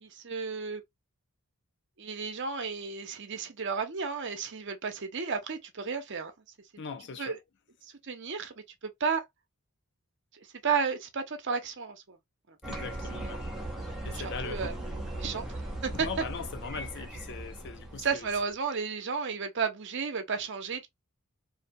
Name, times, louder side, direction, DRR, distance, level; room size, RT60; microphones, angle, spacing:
voice 1, 0.0-0.8 2.0-6.3 7.2-7.4 8.0-8.5 8.8-9.2 10.6-12.2 14.2-14.8 15.2-15.5 15.8-16.1 18.0-20.9, right 5 dB, 55° right, 0.7 m, -32 dB
voice 2, 6.8-7.4 12.7-13.5 14.0-14.8 15.9-18.3, left 5 dB, 50° left, 0.4 m, -40 dB
sound 1, 12.6-18.5, right 1 dB, ahead, 0.6 m, -38 dB
2.7 x 2.2 x 2.6 m
head